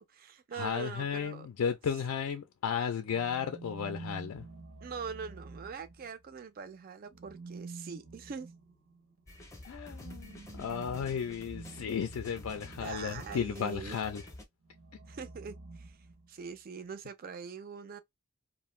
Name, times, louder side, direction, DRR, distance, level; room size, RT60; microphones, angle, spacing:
voice 1, 0.0-1.5 4.8-8.5 12.8-14.0 15.1-16.0 16.3-18.0, right 6 dB, 40° right, 0.4 m, -43 dB
voice 2, 0.6-4.4 9.6-14.2, left 7 dB, 80° left, 0.4 m, -34 dB
sound 1, 3.1-6.4 7.0-13.7 14.6-16.6, right 3 dB, 75° right, 0.7 m, -49 dB
sound 2, 9.3-14.4, left 1 dB, 15° left, 0.5 m, -48 dB
2.4 x 2.1 x 3.0 m
head